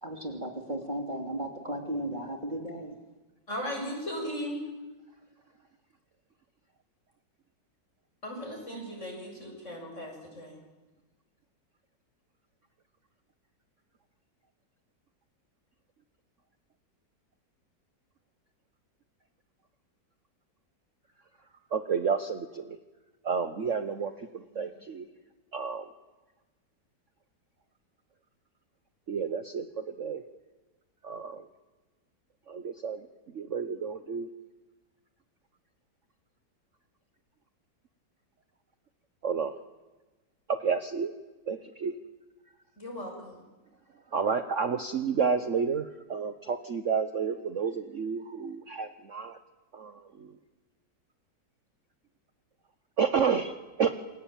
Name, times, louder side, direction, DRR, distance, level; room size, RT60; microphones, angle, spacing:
voice 1, 0.0-2.9, right 1 dB, 25° right, 3 dB, 3.0 m, -35 dB
voice 2, 3.5-4.6 8.2-10.6 24.5-24.6 42.8-43.5, equal, 40° left, 1 dB, 7.8 m, -37 dB
voice 3, 21.7-22.8 23.2-25.1 25.5-25.9 29.1-30.2 31.0-31.4 32.5-33.0 33.3-34.3 39.2-39.6 40.5-41.1 41.5-41.9 44.1-49.4 49.7-50.3 53.0-54.0, right 6 dB, 45° right, 10 dB, 1.3 m, -30 dB
28.0 x 23.5 x 9.1 m, 1.2 s
omnidirectional pair, 2.0 m